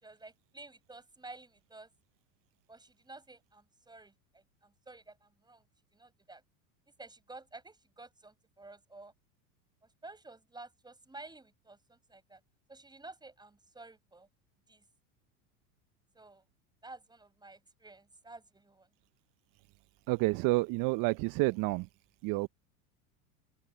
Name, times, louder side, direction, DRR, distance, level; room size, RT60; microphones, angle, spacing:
voice 1, 0.0-1.9 2.7-5.6 5.9-6.4 7.0-9.1 10.0-12.4 12.7-14.3 14.7-14.8 16.1-16.4 16.8-18.9, right 2 dB, 10° right, 5.0 m, -52 dB
voice 2, 20.1-21.9 22.2-22.5, right 23 dB, 50° right, 0.8 m, -29 dB
open air
hypercardioid pair, 95°, 43 cm